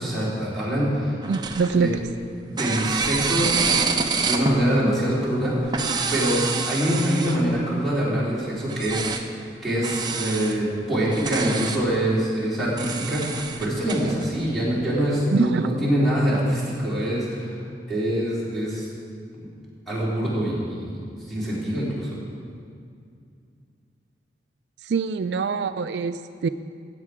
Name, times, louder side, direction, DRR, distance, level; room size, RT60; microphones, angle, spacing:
voice 1, 0.0-1.2 1.7-1.9 2.5-3.5 4.2-5.7 6.1-9.4 9.6-17.6 17.9-18.9 19.4-19.5 19.9-22.2, equal, ahead, -9 dB, 3.3 m, -24 dB
sound 1, 1.2-2.1 2.6-4.6 5.6-7.6 8.7-9.2 9.8-10.6 11.0-11.8 12.8-14.3, right 5 dB, 25° right, 0.6 m, -27 dB
voice 2, 1.3-2.0 15.3-15.7 24.9-26.5, right 5 dB, 75° right, 11 dB, 0.3 m, -24 dB
15.5 x 7.7 x 4.8 m, 2.3 s
head